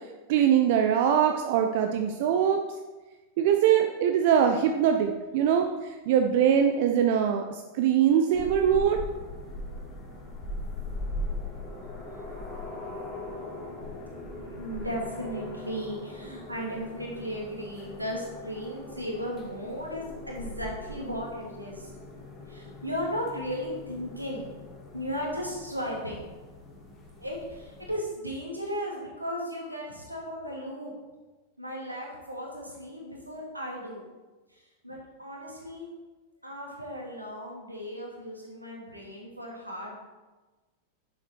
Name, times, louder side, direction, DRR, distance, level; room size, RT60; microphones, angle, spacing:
voice 1, 0.3-2.6 3.4-9.0, right 9 dB, 50° right, 5 dB, 0.7 m, -23 dB
sound 1, 8.3-27.9, left 2 dB, 25° left, 2.4 m, -40 dB
voice 2, 14.6-21.9 22.5-24.5 24.9-26.2 27.2-30.9 31.6-34.1 34.5-35.9 36.4-40.0, equal, 85° right, -2 dB, 2.8 m, -36 dB
10.5 x 7.6 x 4.7 m, 1.2 s
figure-of-eight pair, 90°, 0 cm